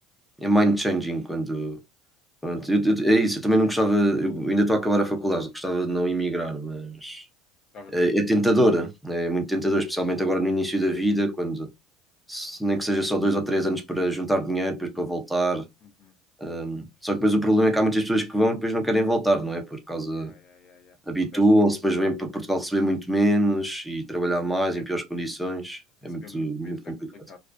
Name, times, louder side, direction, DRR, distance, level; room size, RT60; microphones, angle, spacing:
voice 1, 0.4-1.8 2.4-7.2 7.9-11.7 12.3-15.6 16.4-20.3 21.1-26.9, right 1 dB, ahead, 0.6 m, -24 dB
voice 2, 15.8-16.1 20.1-21.0 21.3-21.4 24.8-24.9 26.2-27.4, left 4 dB, 45° left, 0.6 m, -48 dB
2.4 x 2.3 x 2.2 m
supercardioid pair, 115°, 0 cm